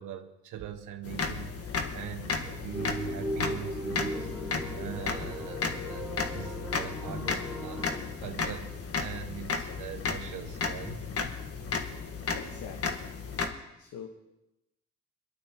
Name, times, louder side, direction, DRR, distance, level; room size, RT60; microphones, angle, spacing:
voice 1, 0.0-4.3 4.7-11.0, right 10 dB, 85° right, 6 dB, 1.1 m, -42 dB
sound 1, 1.0-13.5, left 4 dB, 50° left, 1.5 m, -34 dB
sound 2, 2.7-8.0, equal, 5° right, 3.2 m, -37 dB
voice 2, 12.3-13.1 13.8-14.1, left 7 dB, 80° left, 4 dB, 1.3 m, -43 dB
22.5 x 12.0 x 3.0 m, 0.94 s
cardioid pair, 90°, 30 cm